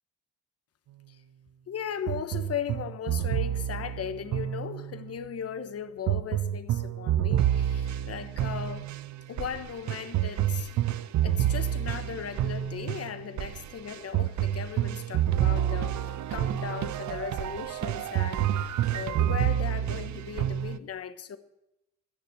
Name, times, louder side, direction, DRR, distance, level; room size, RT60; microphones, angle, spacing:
voice 1, 1.7-8.8 9.3-10.7 11.2-21.4, left 8 dB, 50° left, 1.2 m, -37 dB
sound 1, 2.1-5.2 6.1-20.8, right 11 dB, 70° right, 0.8 m, -29 dB
16.0 x 6.8 x 8.7 m
cardioid pair, 90°, 30 cm